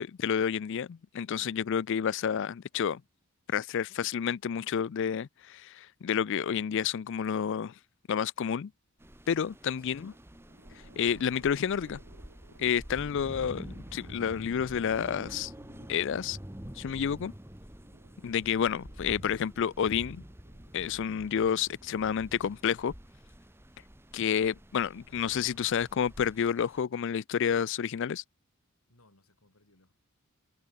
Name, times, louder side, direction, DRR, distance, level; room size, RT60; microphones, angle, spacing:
voice 1, 0.0-3.0 3.5-7.7 8.1-8.7 9.3-10.1 11.0-12.0 12.6-13.7 13.9-15.5 15.9-16.4 16.8-17.3 18.2-20.2 20.7-22.9 24.1-28.2, left 7 dB, 55° left, 0.4 m, -30 dB
sound 1, 9.0-26.8, equal, 10° right, 1.7 m, -48 dB
voice 2, 9.7-10.2 12.9-14.1 18.8-19.0 28.9-29.9, left 2 dB, 75° left, 5.7 m, -60 dB
sound 2, 10.1-22.7, right 2 dB, 70° right, 1.8 m, -59 dB
head